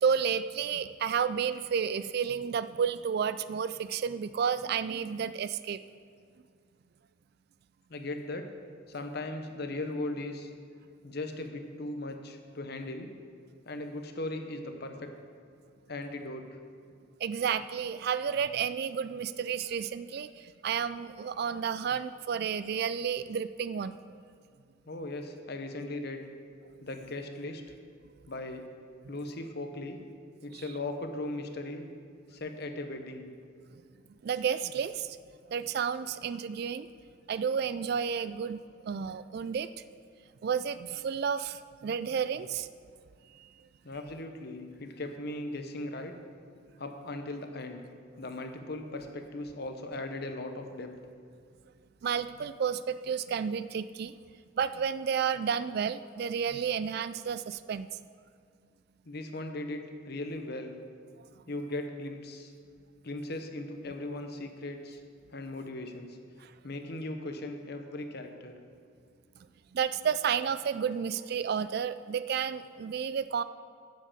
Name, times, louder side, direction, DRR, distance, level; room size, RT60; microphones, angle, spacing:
voice 1, 0.0-5.8 17.2-24.0 30.5-30.6 34.2-35.2 35.5-36.9 37.3-39.7 40.4-42.7 52.0-54.1 54.6-57.9 66.4-66.5 69.7-73.4, right 7 dB, 50° right, 14 dB, 0.3 m, -31 dB
voice 2, 7.9-8.5 8.9-10.5 11.0-13.1 13.7-15.1 15.9-16.6 24.9-26.2 26.8-27.6 28.3-28.6 29.1-30.0 30.4-31.9 32.3-33.3 43.8-46.1 46.8-47.8 48.2-50.9 59.0-60.8 61.5-62.5 63.0-65.0 65.3-66.2 66.6-68.5, left 2 dB, 55° left, 6 dB, 0.9 m, -38 dB
8.9 x 7.5 x 6.8 m, 2.2 s
head